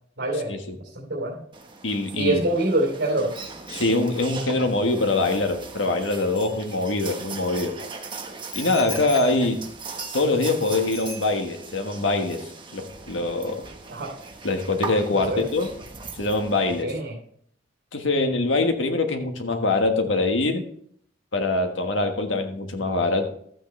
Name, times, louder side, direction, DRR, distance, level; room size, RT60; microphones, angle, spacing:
voice 1, 0.2-0.6 0.9-1.4 2.2-3.3 13.9-14.1 15.1-15.4 16.8-17.1, right 1 dB, 65° right, -4 dB, 3.0 m, -25 dB
sound 1, 1.5-16.8, right 4 dB, 25° right, 1.2 m, -39 dB
voice 2, 1.8-2.4 3.7-7.8 8.5-9.6 10.1-12.4 12.7-13.6 14.4-15.7 16.2-16.9 17.9-20.6 21.3-23.3, left 2 dB, 80° left, 5 dB, 1.5 m, -23 dB
Bicycle bell, 3.4-7.2 8.5-10.6 10.9-11.8 12.1-12.3, left 3 dB, 30° left, 3.3 m, -43 dB
13.0 x 9.0 x 3.3 m, 0.65 s
head